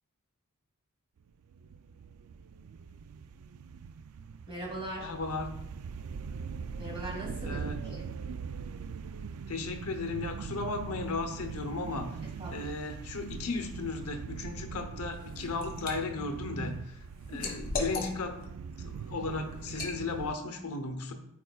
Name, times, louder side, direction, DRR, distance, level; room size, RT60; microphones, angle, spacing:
sound 1, 1.3-20.4, right 6 dB, 70° right, 0.4 m, -42 dB
voice 1, 4.5-5.1 6.8-8.1 12.4-12.7 17.3-17.5, right 1 dB, 25° right, -3 dB, 2.6 m, -40 dB
voice 2, 5.0-5.6 7.4-7.8 9.5-12.2 12.5-17.0 17.3-18.4 18.8-21.1, left 3 dB, 75° left, 6 dB, 0.8 m, -35 dB
Liquid, 15.1-16.0 16.4-18.5 18.9-19.1 19.7-20.0, left 3 dB, 40° left, 1.5 m, -37 dB
13.5 x 4.5 x 2.3 m, 0.81 s
head